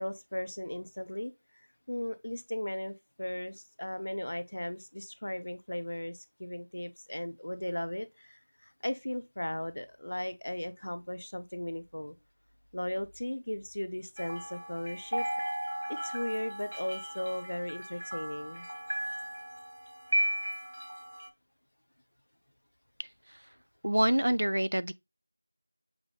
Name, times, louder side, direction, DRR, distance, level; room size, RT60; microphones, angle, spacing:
voice 1, 0.0-12.1 12.7-15.3 15.9-18.7, left 1 dB, 50° left, 0.5 m, -37 dB
sound 1, 14.2-21.3, equal, 85° right, 0.9 m, -36 dB
voice 2, 23.0-23.4 23.8-24.9, right 1 dB, 60° right, 0.3 m, -27 dB
5.9 x 3.4 x 2.3 m
figure-of-eight pair, 180°, 0 cm